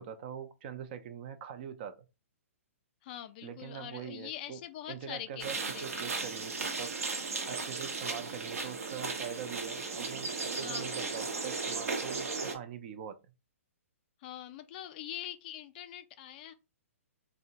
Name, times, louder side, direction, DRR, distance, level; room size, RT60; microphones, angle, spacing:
voice 1, 0.0-2.0 3.4-4.6 4.9-5.6 5.8-6.9 7.5-13.2, right 8 dB, 45° right, 0.4 m, -43 dB
voice 2, 3.0-6.2 10.5-11.0 14.2-16.5, left 11 dB, 40° left, 0.3 m, -44 dB
sound 1, 5.4-12.5, right 4 dB, 75° right, 0.7 m, -36 dB
2.7 x 2.0 x 2.7 m
hypercardioid pair, 125°, 8 cm